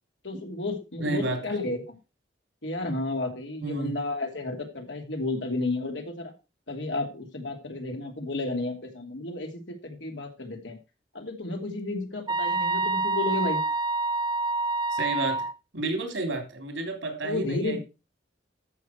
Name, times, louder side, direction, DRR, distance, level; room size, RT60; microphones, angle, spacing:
voice 1, 0.2-2.0 2.6-6.3 6.7-10.8 11.1-13.6 17.2-17.8, left 2 dB, 75° left, 2.8 m, -32 dB
voice 2, 1.0-1.4 3.6-3.9 14.9-15.5 15.7-17.8, right 2 dB, 85° right, 3.5 m, -31 dB
sound 1, 12.3-15.5, right 2 dB, 25° right, 0.5 m, -27 dB
13.0 x 6.7 x 4.5 m
head